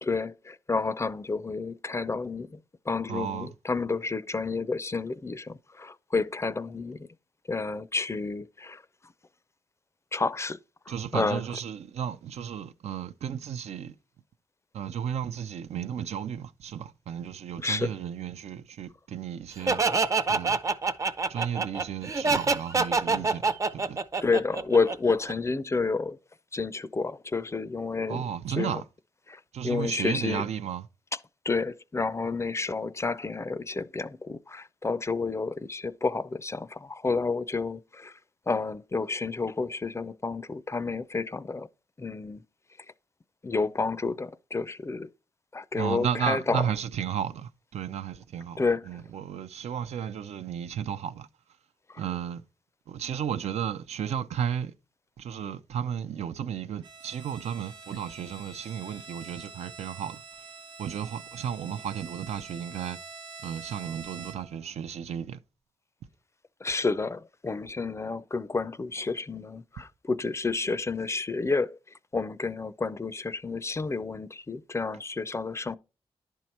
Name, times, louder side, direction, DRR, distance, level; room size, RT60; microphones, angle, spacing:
voice 1, 0.0-2.6 2.9-7.1 7.5-8.8 10.1-10.6 11.1-11.4 17.6-17.9 23.1-23.2 24.2-26.2 26.5-28.2 28.6-28.8 29.6-30.4 31.5-38.1 38.5-41.7 42.0-42.4 43.4-45.1 45.5-46.7 48.6-48.8 66.6-71.8 72.1-75.8, left 4 dB, 25° left, 0.4 m, -30 dB
voice 2, 3.1-3.5 10.9-13.9 14.7-19.8 20.3-20.6 21.3-24.0 28.1-28.8 29.5-30.9 45.8-51.3 52.0-52.4 52.9-54.7 55.2-60.2 60.8-63.0 63.4-65.4, right 8 dB, 80° right, 0.5 m, -33 dB
Laughter, 19.7-25.3, right 4 dB, 30° right, 0.5 m, -26 dB
Bowed string instrument, 56.8-64.7, right 4 dB, 45° right, 1.1 m, -46 dB
10.5 x 4.6 x 4.2 m
cardioid pair, 70°, 11 cm